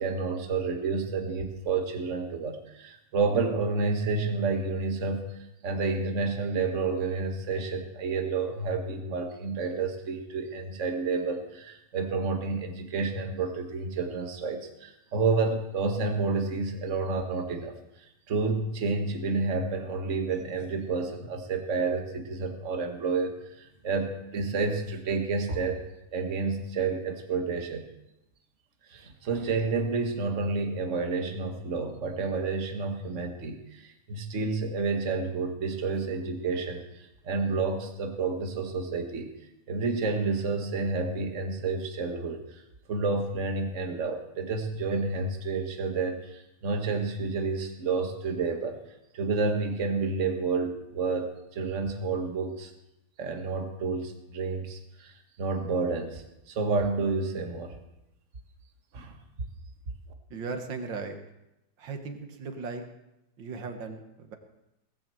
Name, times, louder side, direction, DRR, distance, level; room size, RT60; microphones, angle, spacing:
voice 1, 0.0-5.3 5.6-17.7 18.3-25.8 26.1-27.9 28.9-39.3 39.7-42.6 42.9-48.8 49.1-52.7 53.2-57.7 58.9-59.1, right 4 dB, 40° right, 4 dB, 1.6 m, -30 dB
voice 2, 60.3-61.2 61.8-62.8 63.4-64.4, right 4 dB, 60° right, 6 dB, 2.1 m, -37 dB
18.5 x 7.4 x 7.7 m, 0.89 s
omnidirectional pair, 2.4 m